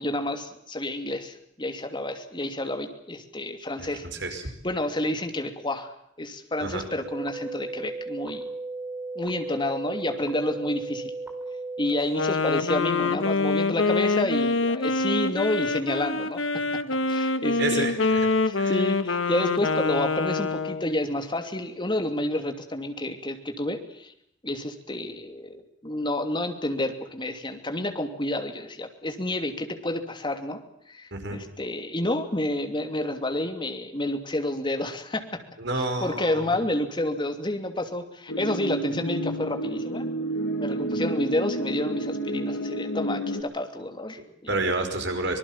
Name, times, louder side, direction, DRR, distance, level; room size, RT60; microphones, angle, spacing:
voice 1, 0.0-4.0 4.6-5.9 6.2-8.4 9.1-11.1 11.8-16.4 17.1-17.9 18.4-24.1 24.4-30.6 30.9-35.2 35.7-40.0 40.6-44.5, left 1 dB, 25° left, 6 dB, 2.8 m, -29 dB
voice 2, 3.8-4.4 6.6-6.8 17.6-18.3 18.6-18.8 31.1-31.4 35.6-36.5 44.5-45.4, right 2 dB, 65° right, 5 dB, 5.3 m, -29 dB
sound 1, 7.0-12.0, right 3 dB, 10° right, 4.7 m, -35 dB
Wind instrument woodwind instrument, 12.0-21.0, left 3 dB, 85° left, 1.5 m, -25 dB
sound 2, 38.3-43.4, right 1 dB, 65° left, 2.3 m, -30 dB
25.5 x 19.5 x 7.4 m, 0.73 s
head